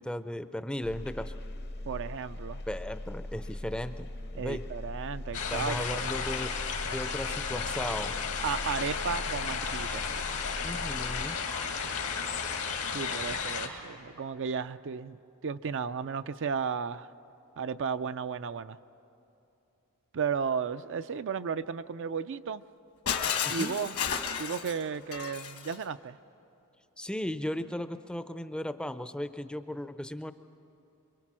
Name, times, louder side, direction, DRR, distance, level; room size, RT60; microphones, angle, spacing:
voice 1, 0.0-1.3 2.7-4.6 5.5-6.5 6.8-8.1 10.6-11.4 23.4-23.7 27.0-30.3, left 1 dB, 5° left, 11 dB, 0.5 m, -36 dB
sound 1, 0.8-11.3, left 1 dB, 50° left, 0.8 m, -40 dB
voice 2, 1.8-2.6 4.4-6.1 8.4-10.1 12.9-15.2 15.4-17.1 17.6-18.8 20.1-22.6 23.5-24.0 24.4-26.2, right 6 dB, 55° right, 12 dB, 0.5 m, -34 dB
sound 2, 5.3-13.7, left 6 dB, 85° left, 2.2 m, -33 dB
Shatter, 23.1-25.8, left 7 dB, 70° left, 1.4 m, -32 dB
27.0 x 23.5 x 6.1 m, 2.8 s
head